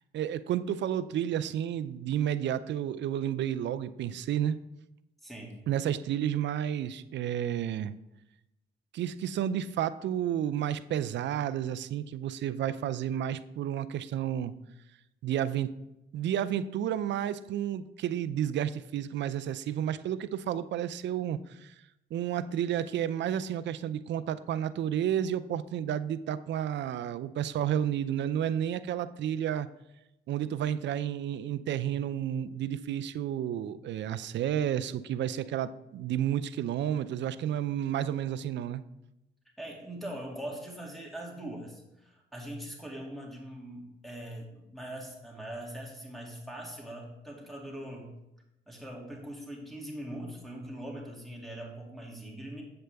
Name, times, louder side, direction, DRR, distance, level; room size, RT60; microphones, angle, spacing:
voice 1, 0.1-4.6 5.7-7.9 8.9-14.5 15.2-15.7 16.1-21.7 22.1-29.7 30.3-38.8, right 10 dB, 65° right, 15 dB, 0.5 m, -31 dB
voice 2, 5.2-5.6 39.6-48.1 48.7-52.6, right 1 dB, ahead, -2 dB, 2.3 m, -42 dB
7.8 x 7.6 x 3.4 m, 0.91 s
cardioid pair, 90°, 20 cm